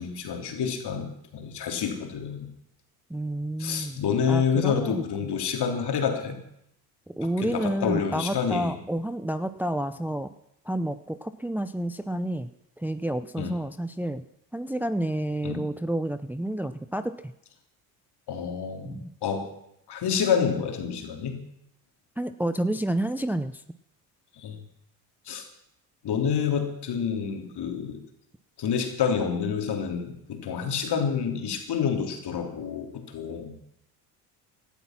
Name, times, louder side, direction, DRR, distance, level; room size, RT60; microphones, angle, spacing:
voice 1, 0.0-2.5 3.6-6.4 7.4-8.7 13.4-13.6 15.4-15.6 18.3-19.5 19.9-21.4 24.4-24.6 25.3-25.5 26.0-28.0 28.6-33.5, left 7 dB, 55° left, 4 dB, 3.4 m, -28 dB
voice 2, 3.1-5.4 7.1-10.3 10.6-12.5 12.8-14.2 14.5-17.3 18.8-19.1 22.2-23.6, right 1 dB, 5° right, 10 dB, 0.7 m, -30 dB
17.5 x 12.0 x 6.0 m, 0.76 s
hypercardioid pair, 65°, 47 cm